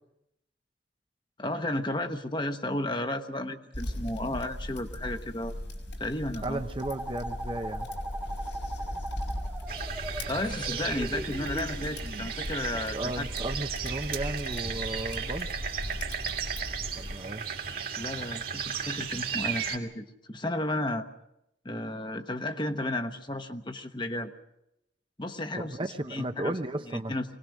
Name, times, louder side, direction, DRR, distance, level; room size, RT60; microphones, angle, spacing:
voice 1, 1.4-5.5 6.0-6.6 10.3-13.3 18.0-21.1 21.6-24.3 25.2-25.8 26.1-26.5 26.9-27.2, left 1 dB, 25° left, 7 dB, 1.1 m, -33 dB
sound 1, 3.7-17.2, left 1 dB, 85° left, 5.4 m, -38 dB
voice 2, 6.4-7.9 12.9-15.5 17.0-17.5 25.6-27.1, right 1 dB, 30° right, 8 dB, 0.8 m, -34 dB
sound 2, 6.8-12.3, right 1 dB, 10° right, 1.5 m, -39 dB
sound 3, 9.7-19.8, right 7 dB, 50° right, 2.2 m, -35 dB
24.5 x 19.0 x 6.3 m, 0.83 s
head